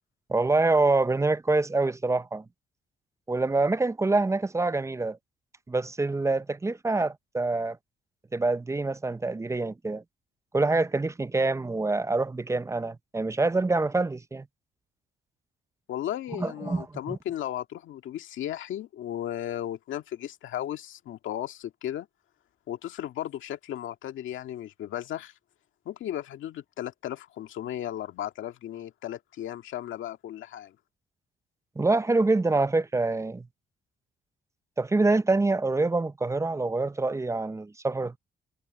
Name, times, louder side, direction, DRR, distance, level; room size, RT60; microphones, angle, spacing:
voice 1, 0.3-2.4 3.3-5.2 5.7-7.8 8.3-10.0 10.5-14.5 16.4-17.2 31.8-33.5 34.8-38.2, right 3 dB, 15° right, 0.5 m, -26 dB
voice 2, 15.9-22.1 22.7-25.3 25.9-30.8, left 11 dB, 75° left, 2.0 m, -35 dB
cardioid pair, 90°, 20 cm